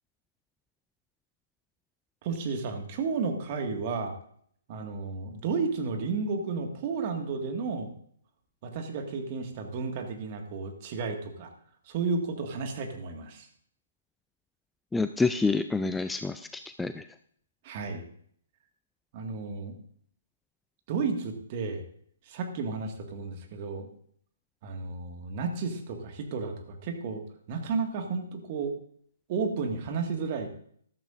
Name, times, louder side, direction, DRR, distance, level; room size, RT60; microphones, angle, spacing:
voice 1, 2.2-4.2 4.7-7.9 8.6-11.5 11.9-13.5 17.6-18.0 19.1-19.7 20.9-21.8 22.3-23.9 24.6-27.2 27.5-28.7 29.3-30.5, right 4 dB, 40° right, 4 dB, 1.9 m, -32 dB
voice 2, 14.9-17.1, left 3 dB, 5° left, 10 dB, 0.4 m, -28 dB
14.0 x 12.5 x 2.6 m, 0.62 s
figure-of-eight pair, 130°, 0 cm